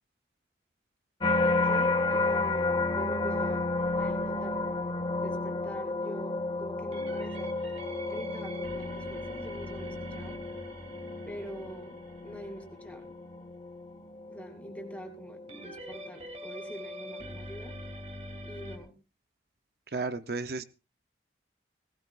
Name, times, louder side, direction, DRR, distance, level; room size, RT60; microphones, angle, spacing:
sound 1, 1.2-16.4 16.9-17.3, left 2 dB, 30° left, 1.1 m, -32 dB
voice 1, 1.4-3.6 4.0-4.6 5.2-7.5 8.1-10.4 11.3-13.0 14.3-17.7 18.4-19.0, equal, 10° left, 4 dB, 2.4 m, -45 dB
sound 2, 3.8-5.0 6.9-13.4 15.5-18.8, equal, 35° right, 1.8 m, -44 dB
voice 2, 19.9-20.6, right 3 dB, 55° right, 10 dB, 0.6 m, -33 dB
18.5 x 17.5 x 2.3 m, 0.30 s
head